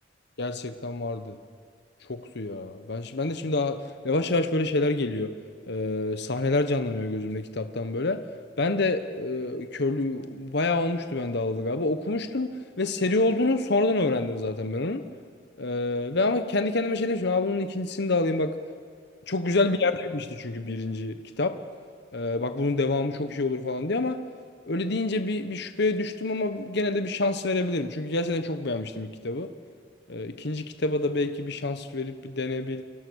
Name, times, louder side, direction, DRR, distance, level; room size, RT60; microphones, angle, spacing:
voice 1, 0.4-1.4 2.1-3.8 4.0-5.3 5.7-8.2 8.6-12.5 12.8-15.0 15.6-18.5 19.3-21.6 22.1-24.2 24.7-29.5 30.1-32.8, left 2 dB, 60° left, 9 dB, 1.2 m, -27 dB
29.0 x 24.5 x 6.4 m, 2.1 s
head